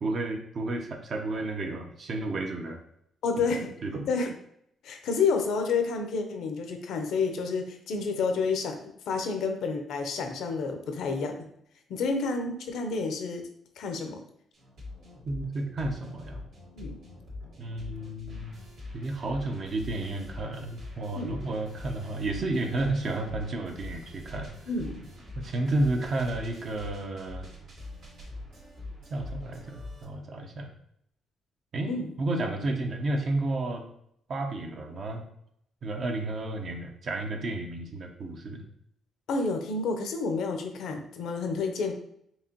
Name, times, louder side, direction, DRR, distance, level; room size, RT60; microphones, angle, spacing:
voice 1, 0.0-2.8 3.8-4.1 15.2-16.4 17.6-18.5 18.9-24.5 25.3-27.5 29.1-30.7 31.7-33.8 34.3-35.2 35.8-38.6, right 2 dB, 55° right, 3 dB, 0.8 m, -32 dB
voice 2, 3.2-3.8 4.1-4.3 4.8-8.8 9.1-11.5 11.9-13.5 13.8-14.2 16.7-17.0 21.1-21.4 24.7-25.1 31.9-32.1 39.3-41.9, left 4 dB, 75° left, 5 dB, 0.6 m, -29 dB
sound 1, 14.5-30.0, left 2 dB, 70° right, 1.6 m, -44 dB
4.7 x 2.9 x 2.9 m, 0.71 s
cardioid pair, 90°, 0 cm